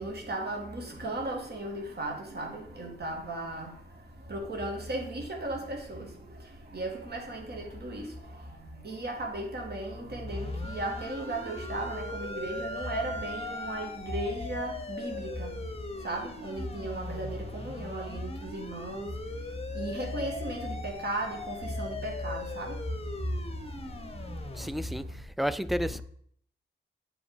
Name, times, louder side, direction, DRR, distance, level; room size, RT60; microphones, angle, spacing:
voice 1, 0.0-25.2 25.8-26.0, right 1 dB, 55° right, 2.2 m, -36 dB
sound 1, 10.3-24.7, left 3 dB, 30° left, 1.0 m, -41 dB
Wind instrument woodwind instrument, 10.6-14.0, right 1 dB, 70° right, 0.9 m, -42 dB
voice 2, 24.5-25.0 25.4-26.0, equal, ahead, 0.3 m, -31 dB
8.6 x 5.0 x 5.1 m
wide cardioid pair, 115°, 20 cm